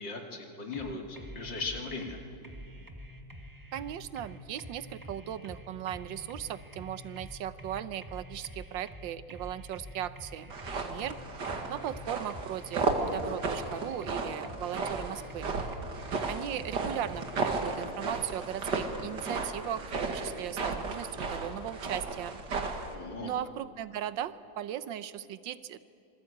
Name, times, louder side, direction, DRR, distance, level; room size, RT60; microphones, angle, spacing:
voice 1, 0.0-2.2 22.9-23.3, left 3 dB, 75° left, 2 dB, 3.2 m, -38 dB
sound 1, 0.7-17.7, equal, 10° right, 1.5 m, -47 dB
voice 2, 3.7-10.5 10.9-11.2 11.7-15.5 16.3-22.4 23.2-25.8, right 11 dB, 80° right, 14 dB, 1.5 m, -37 dB
sound 2, 10.5-22.9, right 3 dB, 65° right, 2.5 m, -34 dB
26.0 x 21.0 x 8.5 m, 2.6 s
omnidirectional pair, 2.0 m